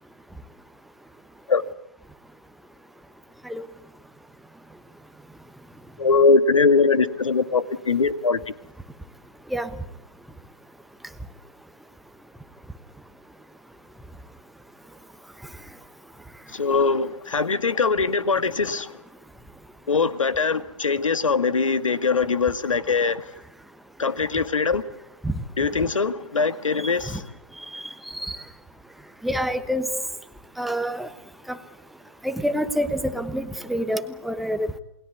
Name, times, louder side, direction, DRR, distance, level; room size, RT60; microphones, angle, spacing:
voice 1, 6.0-8.4 16.5-18.9 19.9-23.2 24.0-24.8 25.6-27.2, left 4 dB, 85° left, 1.8 m, -21 dB
voice 2, 29.2-29.9 30.6-31.1 31.5-31.6 32.2-34.8, equal, ahead, 1.1 m, -27 dB
28.5 x 21.0 x 8.2 m
hypercardioid pair, 140°, 16 cm